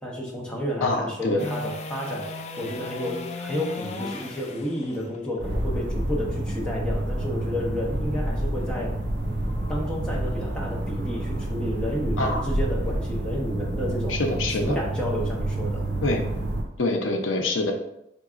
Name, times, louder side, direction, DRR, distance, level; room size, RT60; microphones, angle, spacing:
voice 1, 0.0-2.3 2.6-8.9 9.7-14.2 14.6-15.8, left 1 dB, 5° left, -4 dB, 0.7 m, -31 dB
voice 2, 0.8-1.5 12.2-12.5 14.1-14.8 16.0-16.2 16.8-17.7, left 2 dB, 80° left, 3 dB, 0.6 m, -25 dB
sound 1, 1.4-7.5 14.1-14.2, left 3 dB, 35° left, 0.3 m, -37 dB
sound 2, 5.4-16.6, right 1 dB, 65° right, 0.9 m, -28 dB
3.9 x 3.6 x 2.4 m, 0.80 s
head